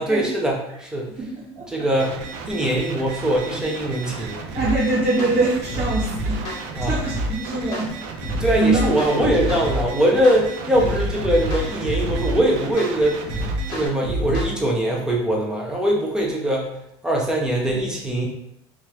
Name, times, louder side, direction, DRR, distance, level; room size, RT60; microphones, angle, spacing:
voice 1, 0.0-1.1 1.7-2.2 2.5-4.4 6.7-6.9 8.4-13.2 13.7-16.8 17.0-18.3, right 1 dB, 5° right, -1 dB, 0.5 m, -22 dB
voice 2, 1.2-1.7 4.5-6.4 6.9-7.9 8.2-8.9, right 2 dB, 25° right, -10 dB, 1.0 m, -23 dB
sound 1, 2.0-13.9, right 5 dB, 60° right, 0.4 m, -35 dB
sound 2, 4.6-4.8 5.2-5.4 5.7-7.3 7.7-7.9 8.2-9.8 10.2-10.4 10.7-12.4 12.8-12.9 13.3-14.5, equal, 40° left, 0.9 m, -27 dB
3.0 x 2.4 x 2.9 m, 0.76 s
cardioid pair, 165°, 13 cm